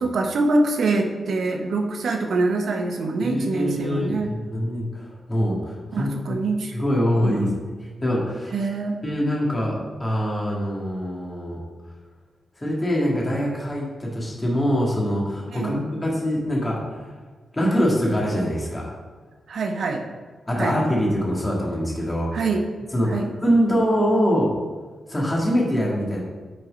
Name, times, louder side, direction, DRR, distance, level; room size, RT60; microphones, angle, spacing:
voice 1, 0.0-4.3 5.9-6.7 7.2-7.5 8.5-9.0 15.5-15.9 19.5-20.0 20.6-20.8 22.3-22.6 23.1-23.3, right 3 dB, 70° right, 4 dB, 0.9 m, -24 dB
voice 2, 3.2-6.4 6.7-7.5 7.8-8.5 9.0-11.6 12.6-16.8 17.5-18.9 20.5-22.5 22.9-24.5 25.1-26.2, equal, 15° left, -3 dB, 1.8 m, -24 dB
6.4 x 4.4 x 5.1 m, 1.4 s
wide cardioid pair, 125°, 0 cm